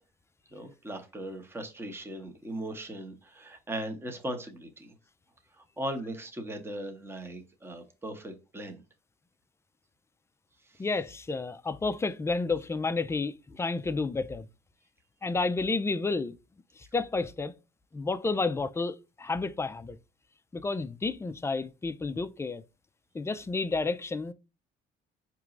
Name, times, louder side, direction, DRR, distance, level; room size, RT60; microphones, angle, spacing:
voice 1, 0.5-4.9 5.5-8.8 10.6-10.8, right 1 dB, 15° right, 0.9 m, -38 dB
voice 2, 10.8-14.5 15.2-16.3 16.8-17.5 17.9-20.0 20.5-22.6 23.1-24.3, left 3 dB, 15° left, 0.4 m, -31 dB
4.6 x 3.0 x 2.5 m
cardioid pair, 110°, 17 cm